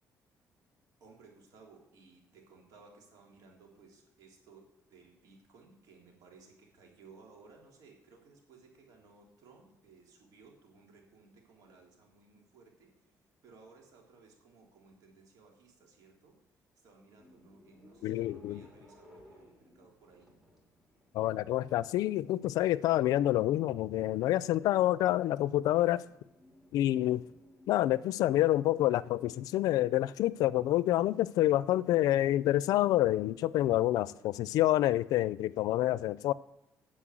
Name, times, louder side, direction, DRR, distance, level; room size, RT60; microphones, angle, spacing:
voice 1, 1.0-13.1 13.4-16.4 16.7-20.3, right 4 dB, 80° right, 3.5 m, -59 dB
sound 1, 17.2-35.7, left 1 dB, 5° right, 2.8 m, -62 dB
voice 2, 18.0-18.7 21.1-26.0 26.7-27.3 27.7-36.3, left 14 dB, 90° left, 0.5 m, -28 dB
10.0 x 7.7 x 7.7 m
cardioid pair, 115°, 6 cm